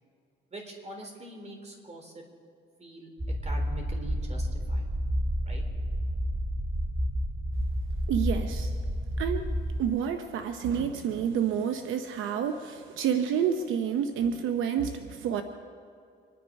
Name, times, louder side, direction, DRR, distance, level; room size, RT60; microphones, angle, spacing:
voice 1, 0.5-2.2 2.8-3.1 3.4-4.9 5.4-5.6, equal, 35° right, 2 dB, 3.8 m, -43 dB
sound 1, 3.2-9.8, equal, 10° right, 1.0 m, -30 dB
voice 2, 8.1-8.7 9.2-9.4 9.8-15.4, right 8 dB, 85° right, 7 dB, 0.8 m, -29 dB
25.5 x 10.5 x 5.3 m, 2.3 s
cardioid pair, 90°, 20 cm